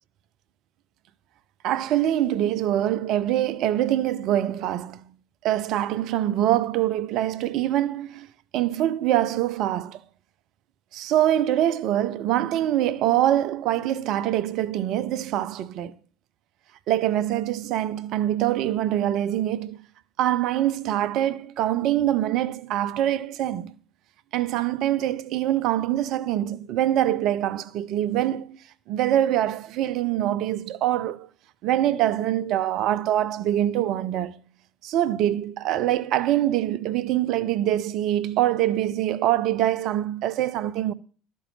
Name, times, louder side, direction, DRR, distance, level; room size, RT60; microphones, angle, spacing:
voice 1, 1.6-5.0 5.4-8.3 8.5-10.0 10.9-15.9 16.9-19.8 20.2-23.7 24.3-28.6 28.9-31.3 31.6-34.3 34.8-40.9, right 12 dB, 60° right, 0.6 m, -24 dB
12.0 x 5.4 x 7.2 m
hypercardioid pair, 70°, 0 cm